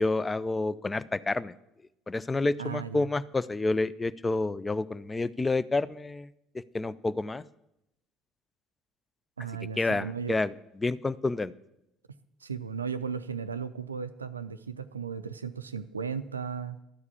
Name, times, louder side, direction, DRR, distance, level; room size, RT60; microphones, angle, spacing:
voice 1, 0.0-1.5 2.1-6.3 6.7-7.4 9.8-10.5 10.8-11.5, left 2 dB, 20° left, 16 dB, 0.4 m, -29 dB
voice 2, 2.6-3.1 9.4-10.4 12.4-16.8, right 6 dB, 90° right, 11 dB, 0.3 m, -36 dB
11.5 x 4.8 x 8.4 m, 0.86 s
figure-of-eight pair, 60°, 0 cm